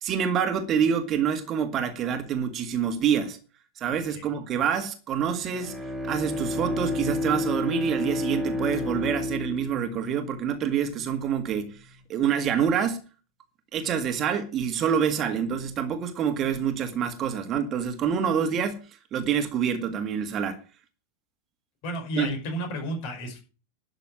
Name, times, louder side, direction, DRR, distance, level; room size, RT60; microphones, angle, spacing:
voice 1, 0.0-3.4 3.8-5.7 6.0-13.0 13.7-18.8 19.1-20.6 22.2-22.3, right 8 dB, 30° right, 1.9 m, -26 dB
Bowed string instrument, 5.5-11.0, left 2 dB, 5° right, 3.3 m, -31 dB
voice 2, 21.8-23.4, equal, 45° left, 5.5 m, -32 dB
12.0 x 6.9 x 8.6 m
figure-of-eight pair, 90°, 0 cm